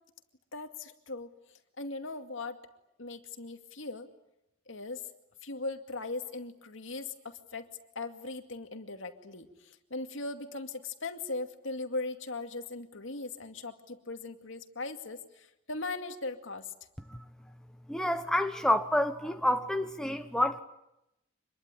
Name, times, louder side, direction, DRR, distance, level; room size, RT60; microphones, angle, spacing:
voice 1, 0.5-1.3 1.8-2.6 3.0-4.1 4.7-5.0 5.4-7.7 8.0-16.7, left 3 dB, 70° left, 6 dB, 2.3 m, -39 dB
voice 2, 17.9-20.6, left 1 dB, 5° left, 6 dB, 1.1 m, -28 dB
26.0 x 22.0 x 9.9 m, 0.88 s
head